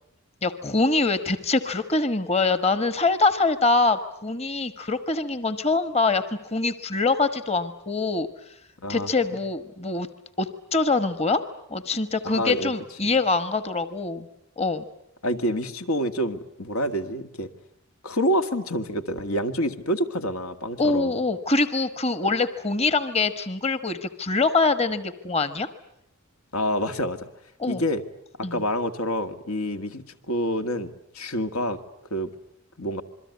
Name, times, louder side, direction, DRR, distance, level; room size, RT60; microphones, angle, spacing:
voice 1, 0.4-6.2 6.5-8.3 8.9-10.1 10.4-11.4 11.7-14.3 14.6-14.8 20.8-25.7 27.6-27.8 28.4-28.6, left 3 dB, 30° left, 12 dB, 1.2 m, -24 dB
voice 2, 12.3-12.7 15.2-17.5 18.0-21.2 26.5-27.3 27.7-28.0 28.4-31.8 32.1-32.3 32.8-33.0, equal, 85° left, 8 dB, 1.9 m, -27 dB
27.5 x 22.5 x 9.5 m, 0.78 s
head